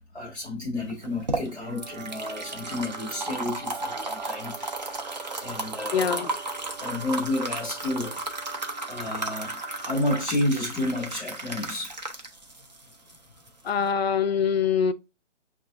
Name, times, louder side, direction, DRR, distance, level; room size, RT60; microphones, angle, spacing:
voice 1, 0.0-4.7 5.4-6.3 6.8-8.2 8.9-12.0, left 2 dB, ahead, 0.7 m, -31 dB
sound 1, 0.9-13.9, right 2 dB, 35° right, 0.5 m, -34 dB
sound 2, 1.5-10.3, right 7 dB, 80° right, 0.7 m, -43 dB
voice 2, 5.9-6.3 13.6-14.9, left 7 dB, 55° left, 0.5 m, -24 dB
5.7 x 2.4 x 2.4 m
hypercardioid pair, 170°, 37 cm